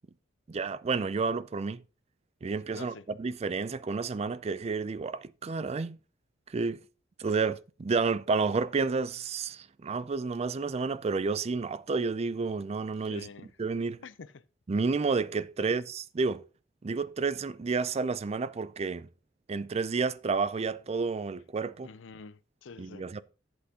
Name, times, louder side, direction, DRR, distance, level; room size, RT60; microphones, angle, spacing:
voice 1, 0.5-1.8 2.4-6.0 6.5-6.8 7.2-13.3 13.6-14.0 14.7-16.4 16.8-19.1 19.5-21.9 22.8-23.2, right 4 dB, 35° right, 0.4 m, -30 dB
voice 2, 2.7-3.1 13.0-13.5 14.0-14.4 15.6-15.7 21.8-23.1, left 4 dB, 75° left, 0.6 m, -47 dB
11.5 x 8.0 x 2.9 m
head